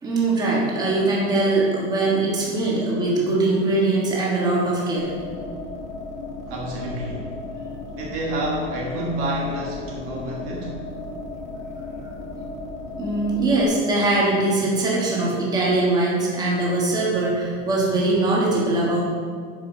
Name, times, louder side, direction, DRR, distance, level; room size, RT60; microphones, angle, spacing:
voice 1, 0.0-5.1 13.0-19.0, right 2 dB, 10° right, -5 dB, 1.3 m, -21 dB
sound 1, 5.0-13.6, left 2 dB, 15° left, 1.2 m, -35 dB
voice 2, 6.5-7.3 7.9-10.9, right 1 dB, 35° right, -2 dB, 1.3 m, -29 dB
9.6 x 5.2 x 5.9 m, 2.1 s
supercardioid pair, 170°, 38 cm